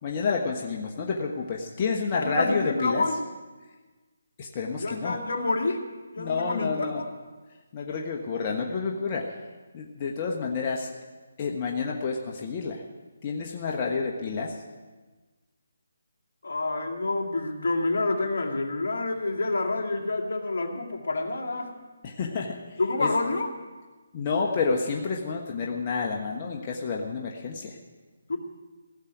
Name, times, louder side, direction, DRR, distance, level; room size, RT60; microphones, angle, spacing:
voice 1, 0.0-3.0 4.4-5.2 6.2-7.0 7.7-9.4 9.7-11.0 11.4-12.8 13.2-14.6 22.0-23.1 24.1-27.8, left 4 dB, 30° left, 0 dB, 1.3 m, -29 dB
voice 2, 2.1-3.2 4.8-5.8 6.1-7.1 16.4-21.8 22.8-23.5 28.3-28.4, left 2 dB, 65° left, 2 dB, 2.2 m, -28 dB
16.5 x 7.5 x 9.3 m, 1.3 s
figure-of-eight pair, 155°, 0 cm